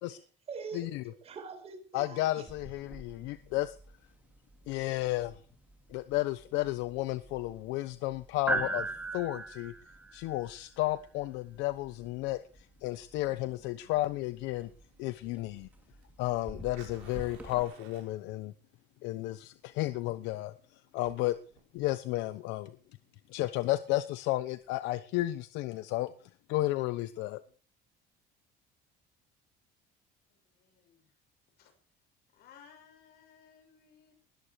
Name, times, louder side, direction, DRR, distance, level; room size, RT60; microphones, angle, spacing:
voice 1, 0.1-2.5, right 5 dB, 35° right, 8 dB, 4.9 m, -45 dB
voice 2, 1.9-3.8 4.7-5.4 5.9-9.7 10.1-14.7 15.0-15.7 16.2-18.5 19.0-20.5 20.9-21.3 21.7-22.8 23.3-26.1 26.5-27.4, left 17 dB, 85° left, 12 dB, 1.0 m, -33 dB
sound 1, 2.5-17.6, right 2 dB, 10° right, 2.4 m, -42 dB
Fire, 13.6-24.7, right 9 dB, 90° right, 6.3 m, -61 dB
voice 3, 30.3-31.2 31.6-31.7 32.3-34.1, left 7 dB, 60° left, 5 dB, 6.8 m, -59 dB
20.5 x 13.5 x 4.9 m, 0.41 s
cardioid pair, 155°, 18 cm